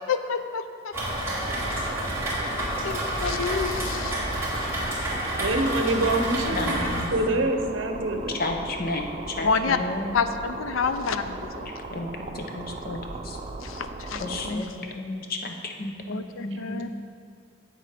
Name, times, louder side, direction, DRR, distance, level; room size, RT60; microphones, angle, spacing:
voice 1, 0.1-0.9 2.8-4.2 4.7-4.8 9.4-9.8 10.1-11.7 13.6-14.8 16.1-16.9, left 5 dB, 80° left, 10 dB, 0.5 m, -28 dB
Rain, 0.9-7.0, right 1 dB, 15° right, 1.9 m, -29 dB
sound 1, 1.4-14.6, right 2 dB, 30° right, 0.5 m, -38 dB
voice 2, 5.4-8.4 16.5-16.6, right 2 dB, 65° right, 5 dB, 0.8 m, -26 dB
voice 3, 6.5-7.4 8.3-10.2 11.9-13.0 13.2-13.4 14.2-16.9, left 2 dB, 45° left, 3 dB, 0.8 m, -33 dB
8.0 x 7.4 x 5.1 m, 2.4 s
head